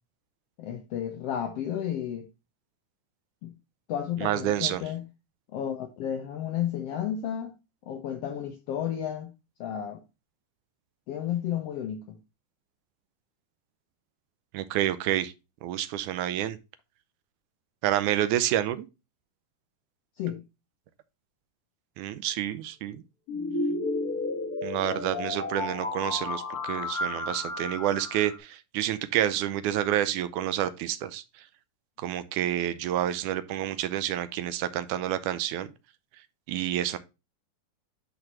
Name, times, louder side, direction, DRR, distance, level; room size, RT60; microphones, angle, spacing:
voice 1, 0.6-2.3 3.4-3.5 3.9-5.0 5.5-7.5 7.9-9.3 9.6-10.0 11.1-12.2 20.2-20.4, left 10 dB, 75° left, 1.4 m, -32 dB
voice 2, 4.2-4.8 14.5-15.3 15.6-16.6 17.8-18.9 22.0-23.0 24.6-31.2 32.0-35.7 36.5-37.0, right 12 dB, 80° right, 2.0 m, -28 dB
sound 1, 23.3-28.4, left 2 dB, 60° left, 1.0 m, -32 dB
10.5 x 4.1 x 3.0 m
omnidirectional pair, 3.7 m